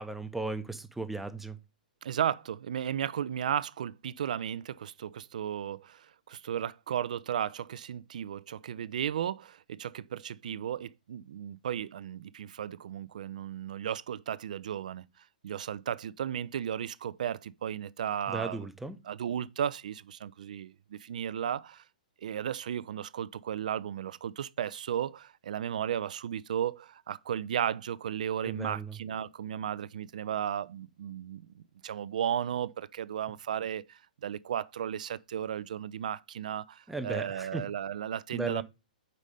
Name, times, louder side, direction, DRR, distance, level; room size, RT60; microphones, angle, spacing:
voice 1, 0.0-1.6 18.3-19.0 28.4-28.9 36.9-37.6 38.3-38.6, right 3 dB, 5° right, 0.6 m, -36 dB
voice 2, 2.0-15.0 15.4-18.7 19.1-21.8 22.2-38.6, right 9 dB, 60° right, 0.3 m, -35 dB
5.3 x 4.1 x 4.8 m
figure-of-eight pair, 115°, 5 cm